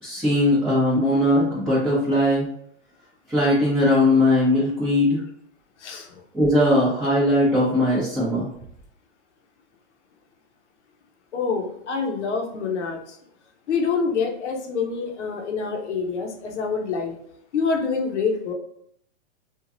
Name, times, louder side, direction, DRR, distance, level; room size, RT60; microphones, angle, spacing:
voice 1, 0.0-2.5 3.3-5.2 6.3-8.5, left 1 dB, 5° right, -11 dB, 0.9 m, -19 dB
voice 2, 5.8-6.2 11.3-13.2 13.7-17.1 17.5-18.5, left 5 dB, 75° left, 2 dB, 0.8 m, -26 dB
3.1 x 2.4 x 2.5 m, 0.69 s
hypercardioid pair, 130°, 35 cm